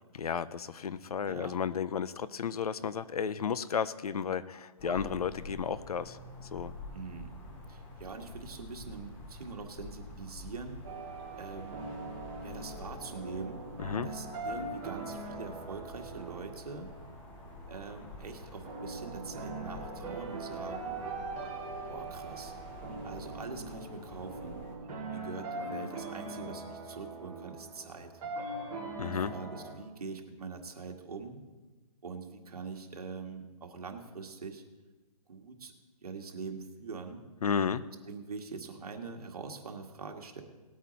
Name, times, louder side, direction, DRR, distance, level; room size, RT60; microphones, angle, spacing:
voice 1, 0.2-6.7 13.8-14.1 29.0-29.3 37.4-37.8, left 7 dB, 70° left, 16 dB, 0.6 m, -33 dB
voice 2, 1.3-1.6 4.8-5.1 6.9-7.4 7.7-10.8 11.4-11.8 12.4-13.6 14.0-16.9 17.7-21.0 21.8-22.5 23.0-24.7 25.1-28.2 29.0-31.4 32.0-34.6 35.3-35.7 36.0-37.2 37.8-40.4, right 4 dB, 70° right, 3 dB, 1.8 m, -43 dB
sound 1, 4.8-24.8, left 2 dB, 10° left, 0.7 m, -48 dB
sound 2, 10.8-29.7, right 2 dB, 20° right, 2.0 m, -41 dB
19.0 x 8.6 x 4.1 m, 1.2 s
hypercardioid pair, 165°, 20 cm